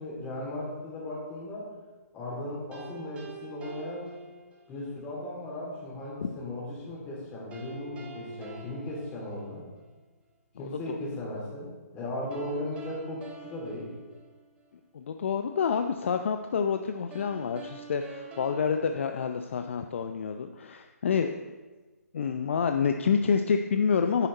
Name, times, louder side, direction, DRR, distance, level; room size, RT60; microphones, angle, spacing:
voice 1, 0.0-1.7 2.1-4.1 4.7-9.6 10.6-13.9, left 1 dB, 15° left, -5 dB, 3.5 m, -37 dB
sound 1, 2.7-4.9 7.5-9.9 12.3-14.8 17.1-19.9, right 4 dB, 15° right, 1.2 m, -47 dB
voice 2, 10.6-11.0 14.9-21.5 22.1-24.3, left 6 dB, 50° left, 7 dB, 0.5 m, -28 dB
10.0 x 9.9 x 4.0 m, 1.3 s
figure-of-eight pair, 140°, 9 cm